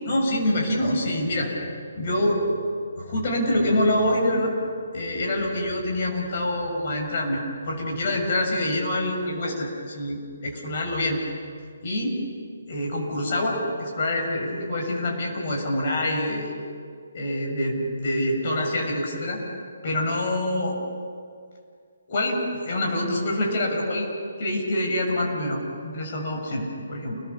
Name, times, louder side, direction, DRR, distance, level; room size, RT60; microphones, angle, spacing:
voice 1, 0.0-1.5 2.0-2.4 3.0-4.5 4.9-11.2 11.8-12.2 12.7-16.5 17.1-19.4 19.8-20.8 22.1-24.1 24.4-27.2, left 1 dB, 40° left, 0 dB, 7.0 m, -26 dB
30.0 x 21.5 x 7.3 m, 2.2 s
hypercardioid pair, 170°, 0 cm